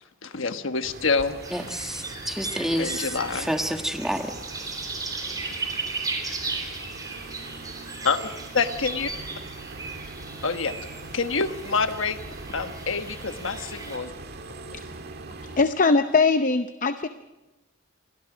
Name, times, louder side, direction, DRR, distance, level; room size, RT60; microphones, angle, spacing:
voice 1, 0.2-1.4 2.8-3.6 8.0-9.1 10.4-10.8 11.1-12.2 12.5-14.1, left 4 dB, 70° left, 8 dB, 1.3 m, -27 dB
sound 1, 0.8-15.6, right 3 dB, 50° right, 2.0 m, -42 dB
sound 2, 1.4-14.0, right 3 dB, 20° right, 3.9 m, -36 dB
voice 2, 1.5-3.1 3.4-4.3, equal, ahead, 5 dB, 1.4 m, -28 dB
voice 3, 15.6-17.1, left 4 dB, 40° left, 10 dB, 0.7 m, -21 dB
29.0 x 24.5 x 5.1 m, 1.1 s
head